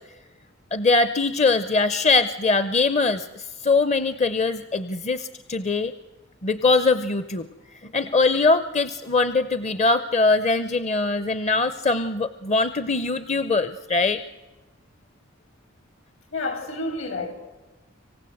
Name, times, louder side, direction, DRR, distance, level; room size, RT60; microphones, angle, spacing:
voice 1, 0.7-5.9 6.4-7.5 7.8-14.2, left 3 dB, 35° left, 0.7 m, -22 dB
voice 2, 16.3-17.3, left 2 dB, 70° left, 4.5 m, -29 dB
26.0 x 16.0 x 8.0 m
head